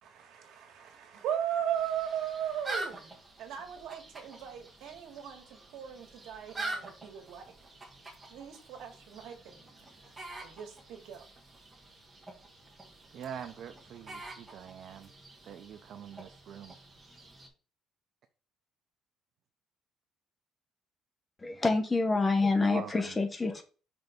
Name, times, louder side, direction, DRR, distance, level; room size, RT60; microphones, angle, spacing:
voice 1, 0.0-7.4 8.3-9.6 10.4-11.3, right 9 dB, 75° right, 1.9 m, -37 dB
sound 1, 1.7-17.5, right 2 dB, 15° right, 1.6 m, -46 dB
voice 2, 13.1-15.1 15.4-16.8 22.6-23.1, right 8 dB, 50° right, 0.6 m, -44 dB
voice 3, 21.4-23.6, left 3 dB, 15° left, 0.9 m, -27 dB
6.0 x 3.5 x 5.1 m
cardioid pair, 160°, 0 cm